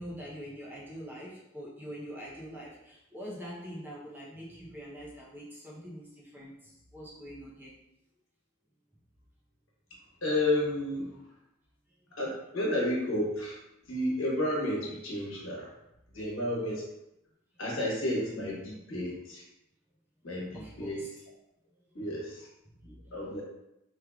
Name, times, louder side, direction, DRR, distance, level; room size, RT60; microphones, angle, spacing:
voice 1, 0.0-7.7 20.5-21.1 22.8-23.2, equal, 10° right, -6 dB, 0.6 m, -44 dB
voice 2, 10.2-11.2 12.2-13.6 13.9-15.7 16.1-16.8 17.6-19.4 20.2-21.0 21.9-22.5 23.1-23.4, left 1 dB, 70° left, -4 dB, 1.1 m, -31 dB
3.3 x 3.3 x 2.3 m, 0.87 s
head